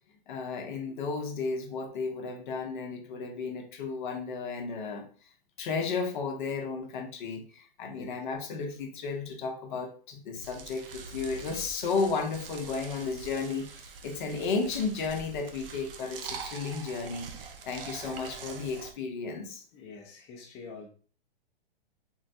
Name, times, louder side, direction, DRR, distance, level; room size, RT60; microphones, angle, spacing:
voice 1, 0.3-5.1 5.6-19.6, left 4 dB, 55° left, 4 dB, 0.7 m, -33 dB
sound 1, 10.4-18.9, right 5 dB, 70° right, 0.6 m, -44 dB
voice 2, 19.7-20.9, left 4 dB, 20° left, -1 dB, 0.5 m, -46 dB
3.7 x 2.1 x 2.6 m, 0.41 s
hypercardioid pair, 125°, 29 cm